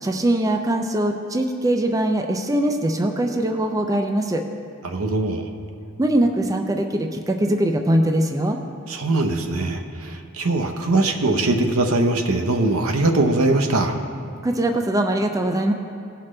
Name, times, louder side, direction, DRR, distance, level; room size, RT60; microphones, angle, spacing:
voice 1, 0.0-4.4 6.0-8.6 14.4-15.7, right 1 dB, 15° right, 4 dB, 0.4 m, -22 dB
voice 2, 4.8-5.5 8.9-13.9, right 2 dB, 90° right, 4 dB, 0.8 m, -21 dB
17.0 x 5.8 x 3.2 m, 2.5 s
head